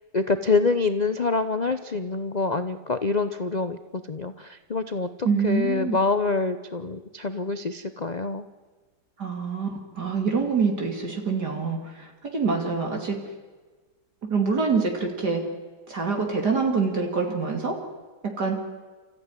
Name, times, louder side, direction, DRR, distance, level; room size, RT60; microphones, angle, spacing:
voice 1, 0.1-8.4, left 3 dB, 80° left, 10 dB, 0.3 m, -26 dB
voice 2, 5.2-6.0 9.2-13.2 14.3-15.4 15.9-17.8 18.2-18.6, right 4 dB, 55° right, 1 dB, 3.1 m, -25 dB
29.5 x 14.5 x 9.8 m, 1.4 s
omnidirectional pair, 2.1 m